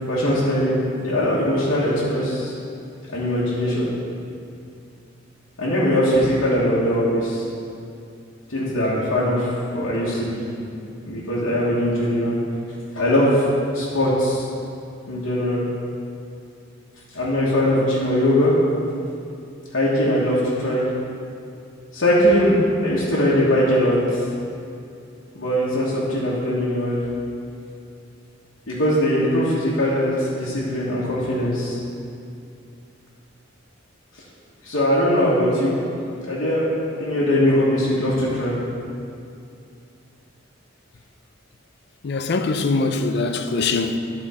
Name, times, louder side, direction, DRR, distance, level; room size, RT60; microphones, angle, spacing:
voice 1, 0.1-2.5 3.1-3.9 5.6-7.4 8.5-10.4 11.0-12.4 12.9-13.5 13.7-14.4 15.1-15.6 17.1-18.5 19.7-20.8 21.9-24.2 25.3-27.0 28.7-31.8 34.6-35.7 36.3-36.6 37.0-38.6, equal, 80° left, 1.4 m, -21 dB
voice 2, 42.0-44.0, left 3 dB, 55° left, 0.5 m, -22 dB
11.5 x 4.4 x 4.3 m
head